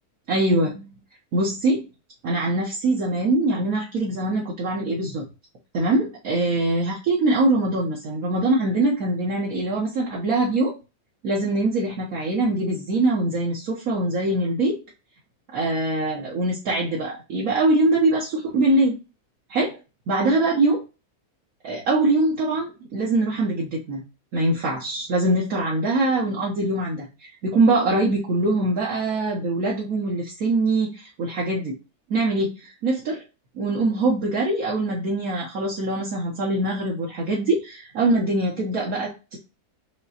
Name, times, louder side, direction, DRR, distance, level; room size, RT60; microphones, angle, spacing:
voice 1, 0.3-0.9 1.3-1.8 2.2-5.2 5.7-10.7 11.2-14.8 15.5-19.0 19.5-19.8 20.1-20.8 21.6-24.0 24.3-31.7 32.1-33.2 33.5-39.4, right 2 dB, 65° right, -3 dB, 1.4 m, -23 dB
5.3 x 3.0 x 2.7 m, 0.29 s
omnidirectional pair, 1.6 m